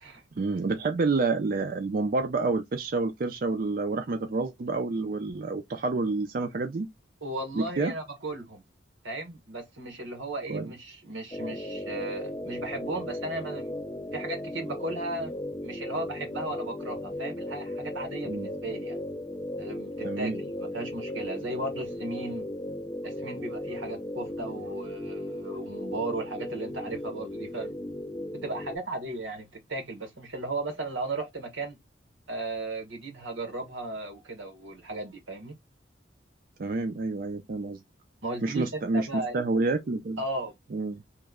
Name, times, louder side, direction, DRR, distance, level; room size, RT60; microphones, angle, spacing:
voice 1, 0.4-6.9 7.5-7.9 10.5-10.7 18.3-18.5 20.0-20.4 36.6-37.8 38.4-40.2 40.7-41.0, right 3 dB, 45° right, 0.4 m, -28 dB
voice 2, 7.2-8.6 9.0-13.7 14.1-15.4 15.6-19.0 19.6-22.5 23.0-27.7 28.4-31.8 32.3-35.6 38.2-38.6 38.9-39.4 40.2-40.5, right 2 dB, 90° right, 1.2 m, -36 dB
sound 1, 11.3-28.8, left 1 dB, 20° left, 0.3 m, -36 dB
3.1 x 2.1 x 3.5 m
head